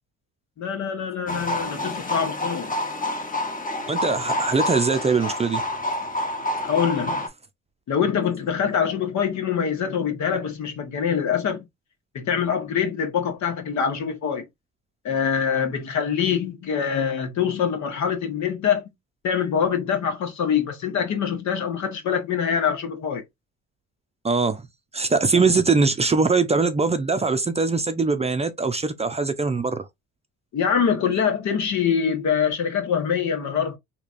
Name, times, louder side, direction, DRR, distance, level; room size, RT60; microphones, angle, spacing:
voice 1, 0.6-2.7 6.6-7.3 7.9-11.7 12.1-14.4 15.0-18.8 19.2-23.2 25.3-25.6 30.5-33.8, left 7 dB, 70° left, 1.1 m, -24 dB
sound 1, 1.3-7.3, left 1 dB, 25° left, 1.1 m, -28 dB
voice 2, 3.9-5.6 24.2-24.6 24.9-29.9, right 4 dB, 20° right, 0.5 m, -22 dB
3.2 x 2.9 x 2.5 m
cardioid pair, 90°, 30 cm